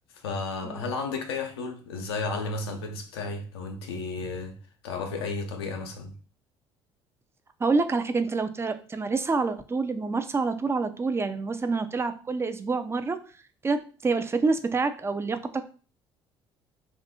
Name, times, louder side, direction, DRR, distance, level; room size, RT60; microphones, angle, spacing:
voice 1, 0.2-4.6 4.8-6.1, left 3 dB, 80° left, 0.5 m, -33 dB
voice 2, 7.6-13.2 13.6-15.6, right 4 dB, 20° right, 0.4 m, -27 dB
2.6 x 2.4 x 3.6 m
hypercardioid pair, 55°, 13 cm